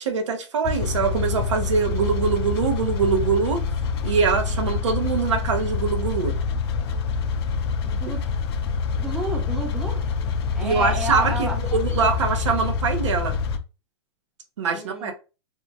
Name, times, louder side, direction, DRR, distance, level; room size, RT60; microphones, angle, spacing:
voice 1, 0.0-3.6 4.0-6.3 10.6-13.4 14.6-15.1, right 5 dB, 85° right, 0.7 m, -23 dB
sound 1, 0.6-13.6, left 5 dB, 55° left, 0.4 m, -26 dB
voice 2, 7.9-8.2 9.0-10.0 10.5-11.6 14.7-15.1, right 2 dB, 5° right, 0.6 m, -31 dB
2.7 x 2.3 x 2.7 m
hypercardioid pair, 150°, 15 cm